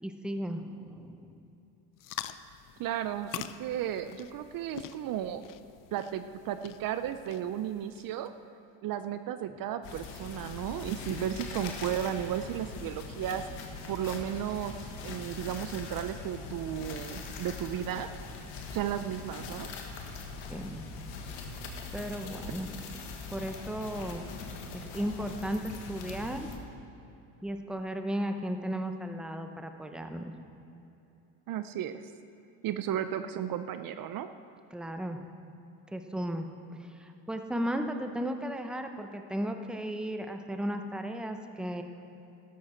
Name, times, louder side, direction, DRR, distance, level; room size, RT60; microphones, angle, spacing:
voice 1, 0.0-1.3 9.5-9.6 20.5-20.8 21.9-22.9 23.3-26.5 27.4-30.3 34.7-35.2 35.9-41.8, equal, ahead, 6 dB, 0.8 m, -35 dB
sound 1, 2.0-8.3, left 12 dB, 50° left, 0.6 m, -45 dB
voice 2, 2.8-5.4 5.9-8.3 8.8-13.4 13.9-18.1 18.7-19.7 31.5-32.1 32.6-34.3, right 10 dB, 55° right, 10 dB, 0.6 m, -34 dB
sound 2, 9.8-26.6, left 4 dB, 80° left, 1.6 m, -42 dB
12.5 x 12.5 x 4.4 m, 2.8 s
supercardioid pair, 100°, 41 cm